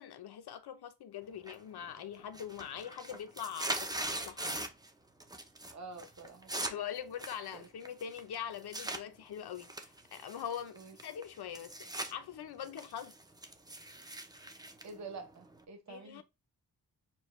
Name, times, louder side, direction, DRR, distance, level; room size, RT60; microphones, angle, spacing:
voice 1, 0.0-4.7 6.7-13.1 15.9-16.2, left 9 dB, 90° left, 0.7 m, -43 dB
sound 1, 1.5-1.9 2.2-4.9 5.2-5.7 6.0-9.0 9.6-12.1 12.5-15.6, right 1 dB, 10° right, 0.5 m, -41 dB
voice 2, 5.7-6.7 7.5-7.7 10.7-10.9 14.8-16.2, right 4 dB, 45° right, 0.8 m, -48 dB
6.7 x 2.3 x 3.0 m
wide cardioid pair, 170°, 37 cm